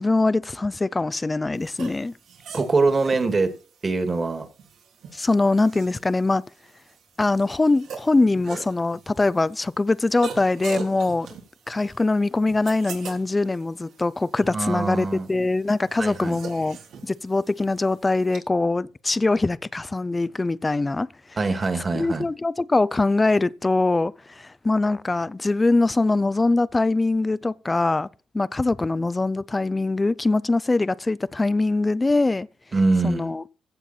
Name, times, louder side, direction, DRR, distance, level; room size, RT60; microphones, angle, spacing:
voice 1, 0.0-2.1 5.1-6.4 7.2-11.3 11.7-16.8 17.0-21.1 21.9-28.1 28.3-32.5 33.0-33.4, left 2 dB, 20° left, 0.5 m, -22 dB
sound 1, 1.6-18.4, right 6 dB, 75° right, 3.1 m, -42 dB
voice 2, 2.5-3.5 3.8-4.5 14.4-15.3 16.0-16.4 21.4-22.3 32.7-33.3, right 3 dB, 30° right, 2.2 m, -23 dB
16.0 x 7.0 x 4.3 m
cardioid pair, 90°, 0 cm